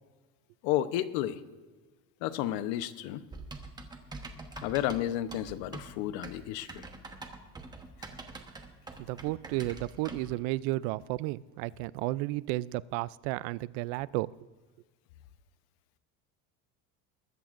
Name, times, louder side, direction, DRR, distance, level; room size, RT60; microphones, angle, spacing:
voice 1, 0.6-1.4 2.2-3.2 4.6-6.9, left 12 dB, 85° left, 13 dB, 0.9 m, -32 dB
Typing, 3.3-10.3, right 3 dB, 10° right, 1.0 m, -45 dB
voice 2, 9.0-14.3, right 18 dB, 85° right, 20 dB, 0.5 m, -33 dB
22.0 x 14.0 x 2.5 m, 1.3 s
cardioid pair, 160°, 33 cm